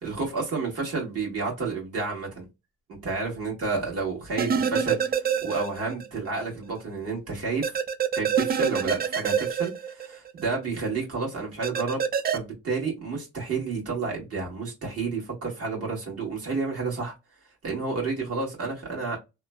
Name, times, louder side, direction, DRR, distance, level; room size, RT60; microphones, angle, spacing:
voice 1, 0.0-2.4 3.0-7.8 8.1-12.0 12.3-17.1 17.6-19.2, right 4 dB, 55° right, 1.5 m, -30 dB
sound 1, 4.4-6.1 6.4-6.5 7.6-10.4 11.6-12.4, right 7 dB, 30° right, 0.4 m, -26 dB
3.0 x 2.0 x 2.2 m
cardioid pair, 90°, 30 cm